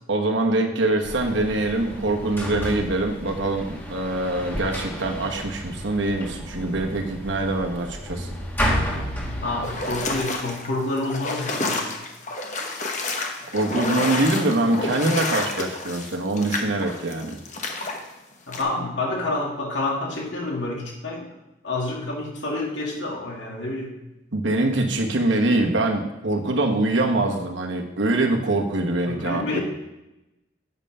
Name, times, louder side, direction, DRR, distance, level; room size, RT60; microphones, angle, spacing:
voice 1, 0.1-8.3 13.5-17.4 24.3-29.6, right 2 dB, 80° right, 3 dB, 1.2 m, -24 dB
sound 1, 1.0-10.2, equal, 10° left, 1.5 m, -31 dB
voice 2, 9.3-11.9 13.4-13.5 18.5-21.3 21.6-23.9 29.1-29.6, left 2 dB, 70° left, -2 dB, 2.4 m, -28 dB
sound 2, 9.6-18.0 18.5-18.6, left 2 dB, 40° left, 1.1 m, -29 dB
8.1 x 5.6 x 5.5 m, 0.95 s
head